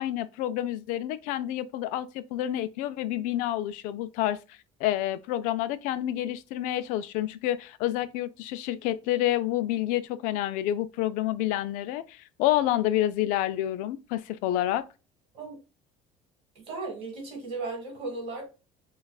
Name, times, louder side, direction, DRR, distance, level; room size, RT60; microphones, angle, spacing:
voice 1, 0.0-14.9, left 13 dB, 75° left, 0.4 m, -29 dB
voice 2, 16.6-18.4, right 3 dB, 45° right, 1.8 m, -36 dB
6.4 x 2.4 x 2.3 m
cardioid pair, 175°, 13 cm